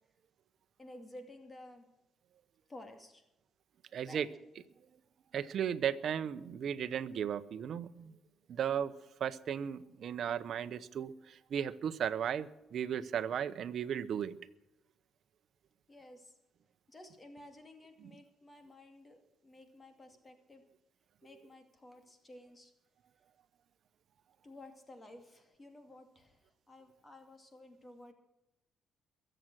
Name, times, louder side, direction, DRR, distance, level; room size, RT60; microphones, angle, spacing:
voice 1, 0.8-1.9 2.7-3.2 4.0-4.3 15.9-16.3 16.9-20.6 21.2-22.7 24.4-28.1, left 1 dB, 25° left, 6 dB, 2.5 m, -54 dB
voice 2, 3.9-4.3 5.3-8.1 8.5-8.9 9.2-14.4 18.0-18.1, right 8 dB, 65° right, 13 dB, 0.9 m, -35 dB
22.0 x 7.9 x 6.2 m, 0.90 s
cardioid pair, 90°, 0 cm